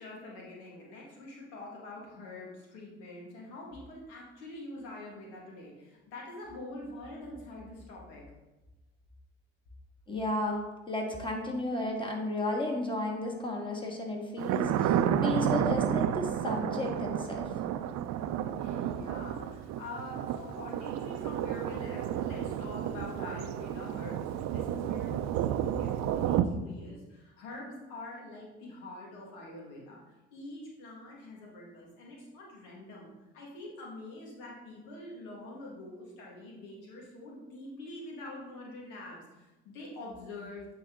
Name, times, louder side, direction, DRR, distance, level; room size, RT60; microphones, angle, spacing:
voice 1, 0.0-8.2 18.5-40.7, left 2 dB, 80° left, -3 dB, 1.8 m, -45 dB
voice 2, 10.1-10.6 10.9-17.5, left 1 dB, 15° left, 0 dB, 1.8 m, -33 dB
Thunder, 14.4-26.4, right 10 dB, 65° right, 0.5 m, -31 dB
8.6 x 4.2 x 3.7 m, 1.1 s
hypercardioid pair, 60°, 29 cm